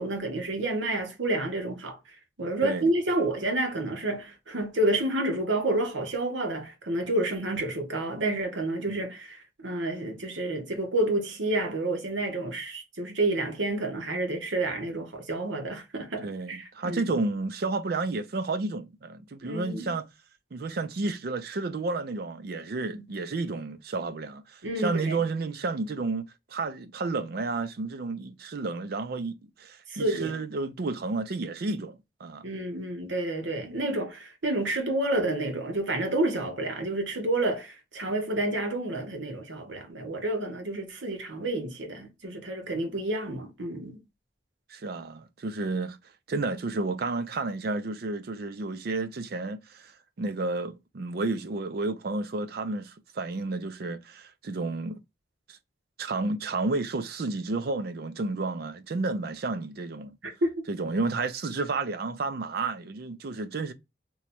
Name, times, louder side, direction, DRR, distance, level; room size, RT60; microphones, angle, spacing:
voice 1, 0.0-17.2 19.4-19.9 22.9-23.0 24.6-25.2 29.9-30.3 32.4-44.0 60.2-60.6, right 2 dB, 85° right, 1.0 m, -29 dB
voice 2, 16.2-20.1 20.5-26.2 26.5-32.5 44.7-46.0 46.3-49.9 50.2-55.0 55.5-55.6 56.0-60.2 60.7-63.7, right 3 dB, 55° right, 0.4 m, -31 dB
3.0 x 2.3 x 4.1 m
head